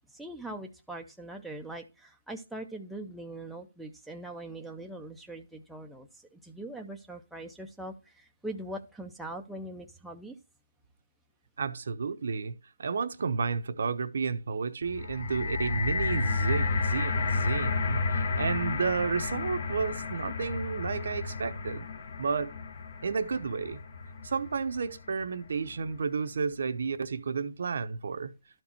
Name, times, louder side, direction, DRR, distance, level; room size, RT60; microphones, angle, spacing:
voice 1, 0.1-10.4, right 1 dB, ahead, 0.5 m, -42 dB
voice 2, 11.6-21.9 22.2-22.5 23.0-23.8 24.2-28.3, right 5 dB, 60° right, 0.8 m, -32 dB
sound 1, 14.8-25.1 25.8-25.9, left 4 dB, 45° left, 0.9 m, -32 dB
12.0 x 4.5 x 4.3 m
hypercardioid pair, 160°, 0 cm